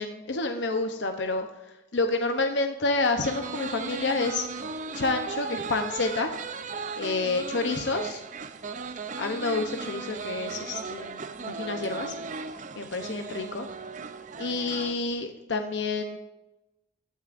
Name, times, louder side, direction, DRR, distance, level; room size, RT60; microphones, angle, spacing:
voice 1, 0.0-1.5 1.9-4.5 4.9-6.3 7.0-8.2 9.2-12.1 12.8-13.7 14.4-16.2, left 3 dB, 85° left, 5 dB, 0.8 m, -29 dB
sound 1, 3.2-14.9, right 4 dB, 45° right, 0.6 m, -36 dB
15.5 x 9.3 x 2.6 m, 1.0 s
head